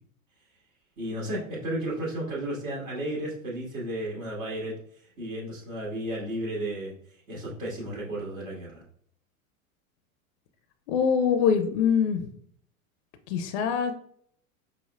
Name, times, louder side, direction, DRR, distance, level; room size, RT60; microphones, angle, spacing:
voice 1, 1.0-6.9 7.3-8.8, right 1 dB, 70° right, -5 dB, 1.4 m, -33 dB
voice 2, 10.9-12.3 13.3-14.0, left 7 dB, 50° left, 9 dB, 0.5 m, -24 dB
5.4 x 2.0 x 2.3 m, 0.64 s
figure-of-eight pair, 90°, 43 cm